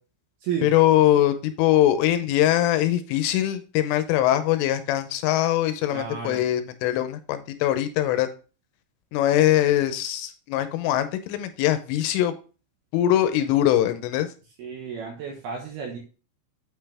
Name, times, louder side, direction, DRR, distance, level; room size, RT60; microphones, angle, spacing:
voice 1, 0.6-8.3 9.1-12.3 12.9-14.3, left 12 dB, 80° left, 9 dB, 3.2 m, -22 dB
voice 2, 5.9-6.4 14.6-16.0, right 7 dB, 70° right, 1 dB, 2.6 m, -32 dB
8.7 x 5.6 x 3.4 m, 0.35 s
omnidirectional pair, 5.8 m